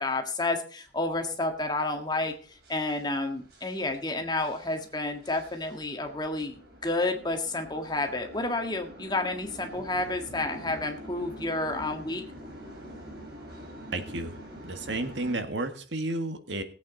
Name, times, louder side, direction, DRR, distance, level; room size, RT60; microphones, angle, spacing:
voice 1, 0.0-2.3 2.7-12.2, left 2 dB, 25° left, 4 dB, 1.8 m, -30 dB
sound 1, 0.9-15.3, equal, 60° right, 3.9 m, -46 dB
voice 2, 13.9-14.4 14.6-16.6, right 2 dB, 85° right, 7 dB, 1.7 m, -32 dB
19.0 x 8.4 x 4.0 m, 0.41 s
head